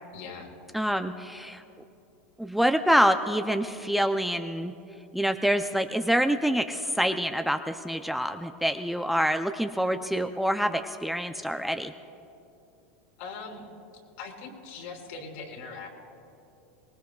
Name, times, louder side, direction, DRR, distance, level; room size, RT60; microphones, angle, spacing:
voice 1, 0.1-0.5 13.2-13.7 14.2-15.9, left 4 dB, 65° left, 1 dB, 3.3 m, -41 dB
voice 2, 0.7-1.6 2.4-4.7 5.1-11.9, equal, ahead, 7 dB, 0.4 m, -26 dB
24.0 x 20.0 x 2.3 m, 2.8 s
supercardioid pair, 130°, 7 cm